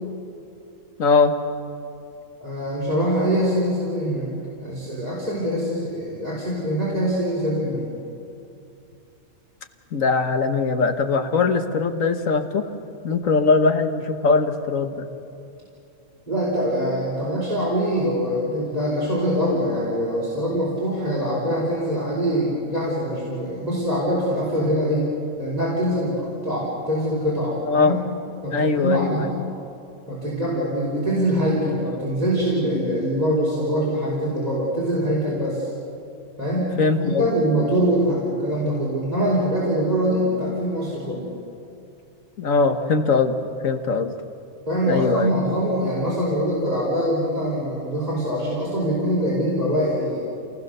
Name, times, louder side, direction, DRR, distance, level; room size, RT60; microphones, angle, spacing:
voice 1, 1.0-1.4 9.9-12.7 13.0-15.1 27.7-28.0 28.5-29.3 36.8-37.3 42.4-44.1 44.9-45.3, left 4 dB, 90° left, 7 dB, 1.7 m, -21 dB
voice 2, 2.4-4.3 4.6-7.9 16.3-25.1 25.4-27.9 28.4-29.4 30.1-35.7 36.4-41.3 44.7-50.2, equal, 30° right, -7 dB, 4.7 m, -23 dB
28.0 x 19.5 x 6.7 m, 2.7 s
omnidirectional pair, 1.3 m